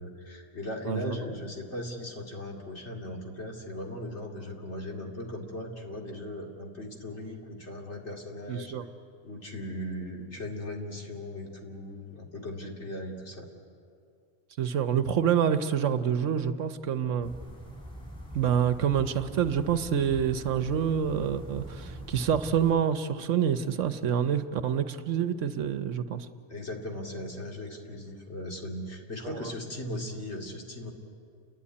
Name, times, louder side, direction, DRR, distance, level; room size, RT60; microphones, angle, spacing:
voice 1, 0.0-8.7 9.2-13.5 26.5-30.9, left 1 dB, 60° left, 0 dB, 2.8 m, -38 dB
voice 2, 0.9-1.2 8.5-8.9 14.6-17.3 18.3-26.3 29.2-29.5, right 8 dB, 75° right, 11 dB, 1.2 m, -27 dB
sound 1, 17.2-22.7, equal, 5° left, 5.8 m, -43 dB
30.0 x 11.5 x 9.7 m, 2.4 s
omnidirectional pair, 1.3 m